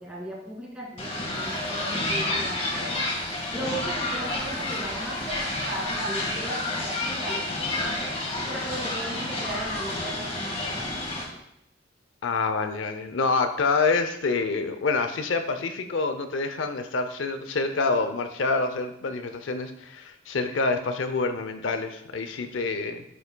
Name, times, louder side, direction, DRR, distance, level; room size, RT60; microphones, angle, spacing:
voice 1, 0.0-3.0 3.5-7.9 8.5-10.6, right 1 dB, 5° right, -4 dB, 2.0 m, -36 dB
sound 1, 1.0-11.2, left 2 dB, 35° left, 1.6 m, -30 dB
voice 2, 12.2-23.0, left 3 dB, 80° left, 8 dB, 0.6 m, -27 dB
9.9 x 6.9 x 2.2 m, 0.80 s
head